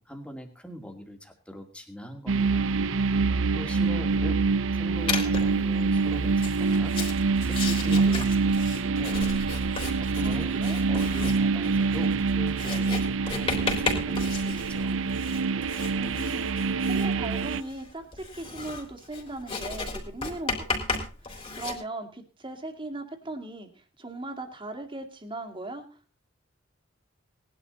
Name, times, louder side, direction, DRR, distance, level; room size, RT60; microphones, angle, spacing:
voice 1, 0.0-2.8 3.5-4.5 4.7-6.9 7.4-9.3 10.0-10.6 10.9-15.0, equal, 5° left, 3 dB, 2.4 m, -41 dB
sound 1, 2.3-17.6, right 4 dB, 80° right, 0.6 m, -25 dB
Writing, 5.1-5.6 6.3-21.7, left 3 dB, 30° left, 3.8 m, -34 dB
voice 2, 10.2-10.8 15.9-26.0, right 2 dB, 25° right, 5 dB, 2.3 m, -38 dB
19.0 x 11.5 x 4.0 m, 0.35 s
head